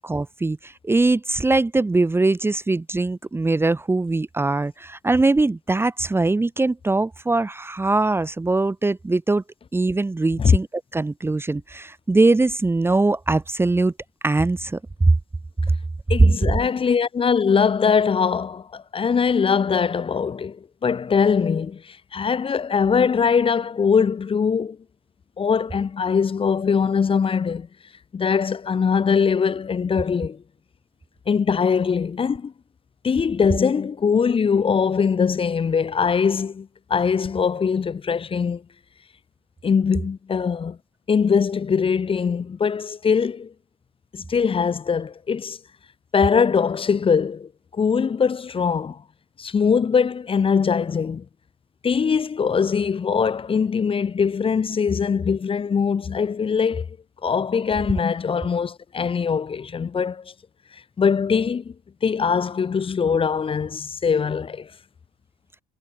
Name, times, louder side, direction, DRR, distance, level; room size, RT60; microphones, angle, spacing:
voice 1, 0.0-9.4 9.7-10.7 10.9-13.9 14.2-14.8, right 2 dB, 15° right, 1.1 m, -21 dB
voice 2, 16.1-24.8 25.4-27.7 28.1-30.4 31.3-32.5 33.0-38.6 39.6-40.8 41.1-43.5 44.1-45.6 46.1-49.0 49.4-51.2 51.8-57.0 57.2-60.3 60.7-61.7 62.0-64.7, left 6 dB, 30° left, 1.6 m, -22 dB
cardioid pair, 110°, 17 cm